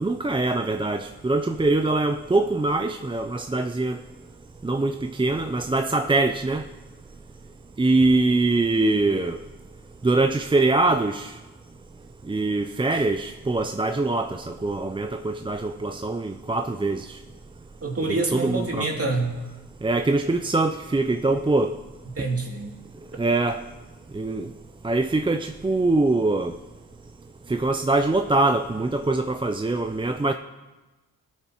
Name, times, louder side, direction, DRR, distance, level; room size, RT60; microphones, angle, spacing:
voice 1, 0.0-4.0 4.6-6.6 7.8-9.4 10.0-11.3 12.3-17.2 18.1-18.9 19.8-21.8 23.2-23.6 24.1-24.5 24.8-26.6 27.5-30.3, right 2 dB, 15° right, 7 dB, 0.5 m, -23 dB
voice 2, 17.8-19.4 22.1-22.7 23.1-23.2, right 3 dB, 35° right, 0 dB, 2.7 m, -27 dB
18.0 x 9.1 x 3.0 m, 1.2 s
supercardioid pair, 40°, 38 cm